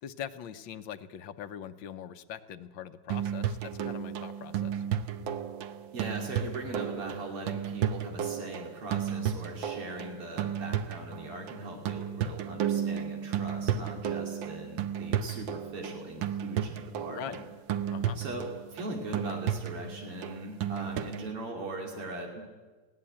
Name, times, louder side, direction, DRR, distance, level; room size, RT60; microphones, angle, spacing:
voice 1, 0.0-4.8 17.1-17.4 17.9-18.2, left 9 dB, 65° left, 11 dB, 1.5 m, -42 dB
sound 1, 3.1-21.3, right 9 dB, 65° right, 1.6 m, -33 dB
voice 2, 5.9-17.5 18.2-22.5, right 2 dB, 85° right, 1 dB, 3.6 m, -40 dB
20.5 x 17.0 x 8.6 m, 1.3 s
omnidirectional pair, 2.4 m